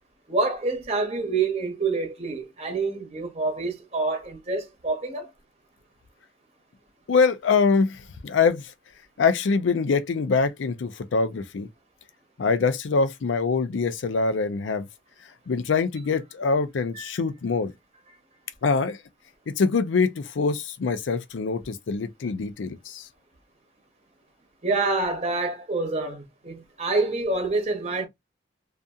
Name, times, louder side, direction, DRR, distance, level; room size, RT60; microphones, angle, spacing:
voice 1, 0.3-5.3 16.9-17.0 24.6-28.1, right 3 dB, 35° right, 0.8 m, -27 dB
voice 2, 7.1-8.7 9.2-11.7 12.4-14.9 15.5-17.7 18.6-19.0 19.5-23.1, left 4 dB, 80° left, 0.4 m, -24 dB
2.7 x 2.4 x 2.3 m
head